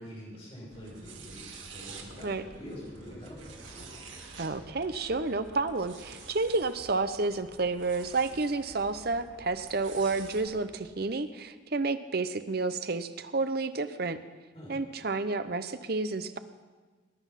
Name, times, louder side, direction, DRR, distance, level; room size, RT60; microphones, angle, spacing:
voice 1, 0.0-3.9 14.5-14.8, equal, 30° left, -5 dB, 6.2 m, -45 dB
sound 1, 0.7-10.5, right 4 dB, 90° right, 2.3 m, -49 dB
sound 2, 2.9-11.1, equal, 10° left, 3.1 m, -56 dB
voice 2, 4.4-14.2 14.7-16.4, right 3 dB, 50° right, 11 dB, 0.8 m, -30 dB
20.0 x 10.5 x 5.8 m, 1.4 s
head